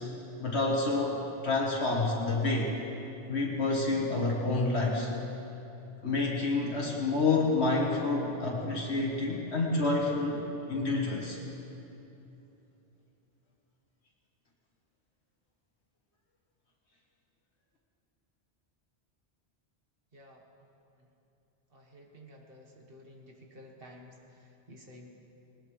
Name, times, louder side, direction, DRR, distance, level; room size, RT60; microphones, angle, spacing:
voice 1, 0.4-2.7 3.3-5.1 6.0-10.4 10.7-11.4, left 3 dB, 70° left, -2 dB, 1.8 m, -28 dB
voice 2, 20.1-20.4 21.7-25.1, left 1 dB, 55° right, 0 dB, 1.9 m, -52 dB
20.0 x 19.5 x 3.4 m, 2.9 s
omnidirectional pair, 1.2 m